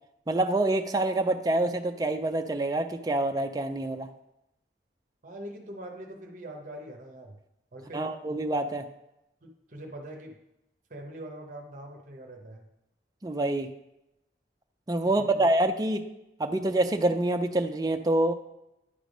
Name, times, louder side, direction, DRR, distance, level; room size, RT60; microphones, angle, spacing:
voice 1, 0.3-4.1 7.9-8.9 13.2-13.7 14.9-16.0 16.4-18.3, right 2 dB, 20° right, 5 dB, 0.4 m, -26 dB
voice 2, 5.2-7.3 7.7-8.1 9.4-10.4 10.9-12.7 15.0-15.5, right 1 dB, 45° right, 2 dB, 0.8 m, -43 dB
9.9 x 3.3 x 5.1 m, 0.88 s
head